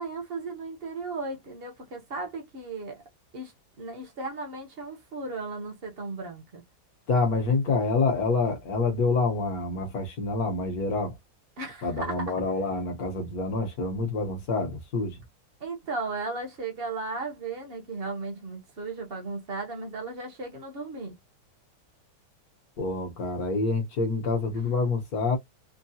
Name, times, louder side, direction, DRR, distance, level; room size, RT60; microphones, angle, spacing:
voice 1, 0.0-3.0 3.3-3.5 3.8-6.6 11.6-12.4 15.6-21.2, right 3 dB, 50° right, 0.7 m, -35 dB
voice 2, 7.1-11.1 11.8-15.2 22.8-25.4, left 3 dB, 60° left, 1.4 m, -27 dB
3.7 x 2.0 x 2.7 m
omnidirectional pair, 1.9 m